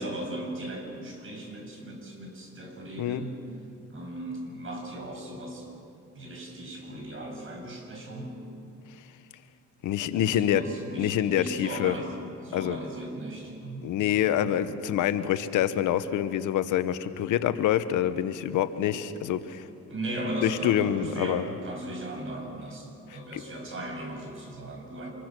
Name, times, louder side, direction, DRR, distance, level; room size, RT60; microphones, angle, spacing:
voice 1, 0.0-3.4 3.9-5.7 6.1-8.4 10.1-12.1 12.4-13.8 19.9-25.1, right 1 dB, 45° right, 1 dB, 6.8 m, -37 dB
voice 2, 9.8-10.7 11.0-11.9 12.5-12.8 13.8-19.7 20.4-21.5 23.3-23.4, left 11 dB, 85° left, 12 dB, 1.1 m, -26 dB
26.0 x 23.5 x 6.2 m, 2.4 s
cardioid pair, 90°, 30 cm